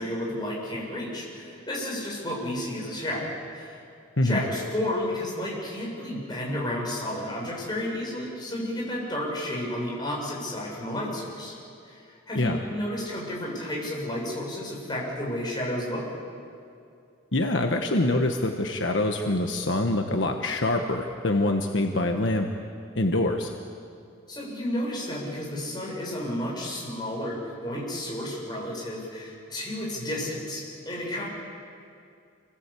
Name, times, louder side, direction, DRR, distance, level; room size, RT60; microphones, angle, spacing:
voice 1, 0.0-3.8 4.2-11.5 11.9-16.0 24.3-31.3, left 1 dB, 20° left, -3 dB, 6.6 m, -32 dB
voice 2, 17.3-22.5 22.9-23.5, left 2 dB, 65° left, 4 dB, 1.3 m, -25 dB
27.5 x 19.5 x 8.5 m, 2.4 s
head